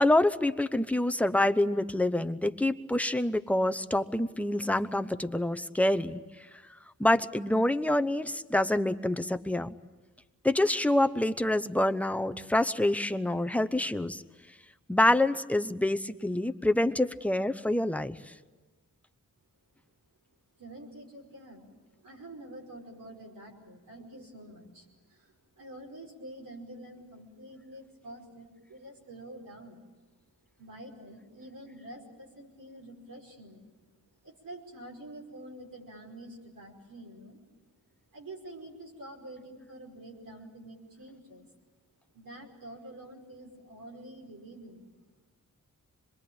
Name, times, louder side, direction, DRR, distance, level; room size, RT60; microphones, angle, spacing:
voice 1, 0.0-6.2 7.0-9.8 10.4-14.2 14.9-18.3, left 1 dB, 5° left, 8 dB, 0.8 m, -26 dB
voice 2, 20.6-29.9 30.6-33.7 34.2-37.4 38.1-41.5 42.1-45.0, right 1 dB, 90° right, 0 dB, 5.4 m, -47 dB
26.0 x 21.5 x 8.9 m, 1.3 s
wide cardioid pair, 85°, 33 cm